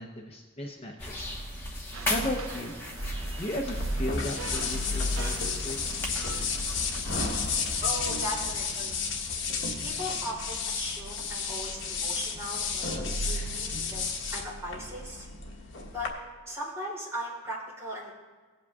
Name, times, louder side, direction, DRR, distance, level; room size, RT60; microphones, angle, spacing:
voice 1, 0.0-1.3 2.1-2.8 3.0-6.0, left 1 dB, 30° left, 0 dB, 0.7 m, -36 dB
sound 1, 1.0-7.8, equal, 10° left, 1.2 m, -36 dB
sound 2, 1.9-7.0, right 5 dB, 75° right, 0.6 m, -44 dB
sound 3, 3.7-16.1, left 4 dB, 65° left, 1.3 m, -32 dB
voice 2, 7.8-9.0 9.8-15.3 15.9-16.1 16.5-18.1, equal, 15° right, -6 dB, 3.0 m, -38 dB
17.5 x 8.7 x 2.4 m, 1.4 s
head